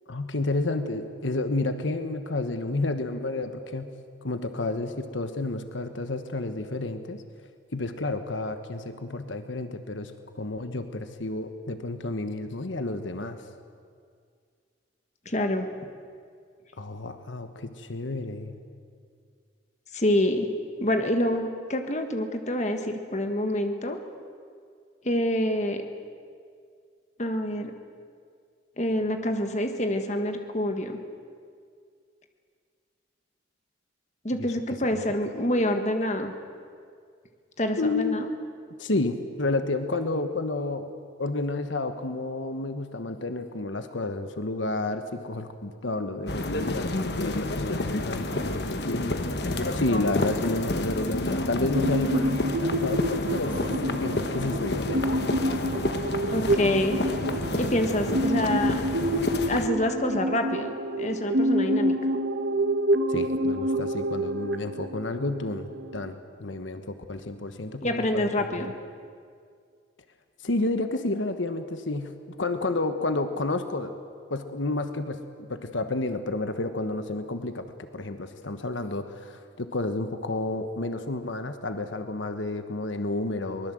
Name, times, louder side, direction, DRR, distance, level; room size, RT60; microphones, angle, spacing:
voice 1, 0.1-3.9 4.2-7.2 7.7-13.4 16.8-18.6 34.4-34.5 34.9-35.0 37.8-38.2 38.8-40.9 41.2-46.9 47.2-49.2 49.7-53.6 54.0-55.2 63.1-68.5 70.4-73.9 74.3-83.7, left 2 dB, 80° left, 8 dB, 1.3 m, -30 dB
voice 2, 15.2-15.7 19.9-20.5 20.8-24.0 25.0-25.8 27.2-27.7 28.8-31.0 34.2-36.3 37.6-38.3 56.3-57.0 57.6-58.8 59.5-61.9 67.8-68.7, left 1 dB, 40° left, 5 dB, 1.6 m, -27 dB
sound 1, 46.3-59.7, left 2 dB, 55° left, 1.2 m, -30 dB
sound 2, 51.7-66.1, right 1 dB, 60° right, 1.1 m, -28 dB
23.0 x 20.0 x 7.8 m, 2.2 s
head